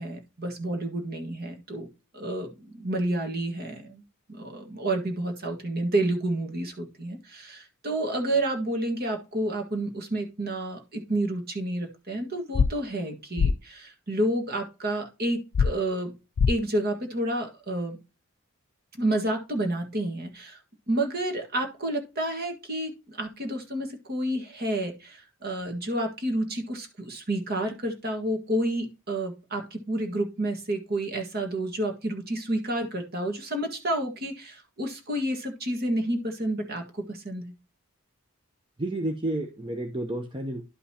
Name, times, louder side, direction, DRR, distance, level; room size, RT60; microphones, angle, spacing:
voice 1, 0.0-1.9 2.1-4.0 4.3-16.1 16.5-18.0 19.0-20.6 20.9-37.5, right 1 dB, 45° right, 4 dB, 1.6 m, -30 dB
sound 1, 12.5-12.7 13.4-13.5 15.5-15.7 16.4-16.5, left 5 dB, 50° left, 0.3 m, -20 dB
voice 2, 38.8-40.6, right 1 dB, 20° right, 4 dB, 0.7 m, -31 dB
11.5 x 5.4 x 2.8 m, 0.28 s
head